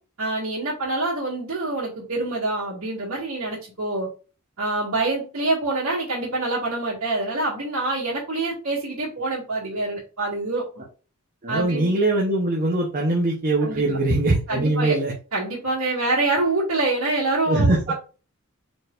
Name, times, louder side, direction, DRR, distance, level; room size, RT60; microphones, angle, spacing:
voice 1, 0.2-4.1 4.6-10.8 11.5-11.9 13.6-14.0 14.5-15.0 15.3-17.9, right 2 dB, 70° right, -9 dB, 2.2 m, -26 dB
voice 2, 11.4-15.1 17.5-17.9, right 2 dB, 40° right, -1 dB, 1.0 m, -22 dB
4.9 x 4.2 x 2.6 m, 0.35 s
head